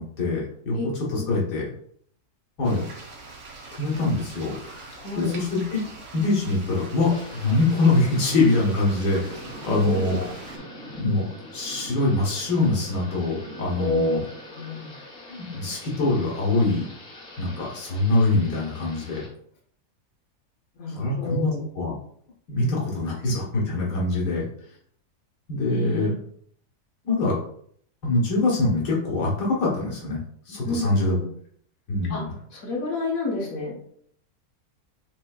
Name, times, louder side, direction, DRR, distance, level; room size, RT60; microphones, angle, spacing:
voice 1, 0.0-0.8 1.1-1.7 2.6-2.9 3.8-5.8 6.1-9.3 9.6-10.3 10.9-11.3 11.5-14.2 15.3-16.9 17.4-19.2 20.9-21.9 22.5-24.5 25.5-26.1 27.1-27.4 28.0-30.2 30.5-31.2 31.9-32.3, left 2 dB, 85° left, -4 dB, 1.8 m, -24 dB
voice 2, 0.7-1.3 4.9-5.3 9.7-10.3 13.8-14.2 14.5-14.9 20.8-21.7 25.6-26.2 30.6-31.3 32.1-32.2 32.5-33.8, left 2 dB, 60° left, -3 dB, 1.7 m, -29 dB
sound 1, 2.6-10.6, right 3 dB, 55° right, 1.2 m, -43 dB
Thunder / Rain, 7.1-19.3, left 1 dB, 40° left, 1.3 m, -42 dB
7.1 x 3.0 x 2.3 m, 0.64 s
omnidirectional pair, 1.7 m